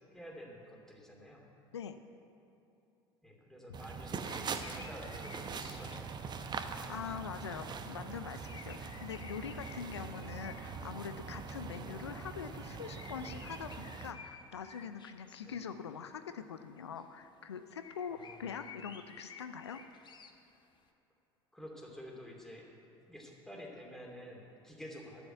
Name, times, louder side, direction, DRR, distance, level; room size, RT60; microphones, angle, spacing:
voice 1, 0.1-1.5 3.2-6.6 11.8-12.0 15.4-15.6 18.1-18.5 21.5-22.7 23.1-25.2, equal, 5° left, -1 dB, 2.7 m, -50 dB
sound 1, 3.7-14.1, right 5 dB, 30° right, 0.9 m, -43 dB
sound 2, 4.2-7.1 7.4-10.9 11.3-11.4 11.7-11.8 12.5-16.0 17.0-17.1 17.8-20.8, left 5 dB, 35° left, 1.1 m, -54 dB
voice 2, 6.9-19.8, left 7 dB, 85° left, 9 dB, 0.5 m, -43 dB
10.5 x 7.0 x 9.1 m, 2.9 s
hypercardioid pair, 70°, 14 cm